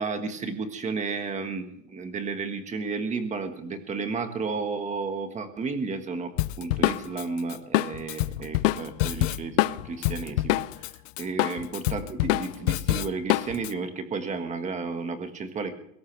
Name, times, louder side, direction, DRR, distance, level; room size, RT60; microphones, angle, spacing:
voice 1, 0.0-10.9 11.2-15.7, right 4 dB, 15° right, 7 dB, 1.6 m, -32 dB
Drum kit, 6.4-10.9 11.2-13.7, left 18 dB, 65° left, 0.7 m, -25 dB
21.0 x 17.5 x 3.4 m, 0.72 s
supercardioid pair, 160°, 42 cm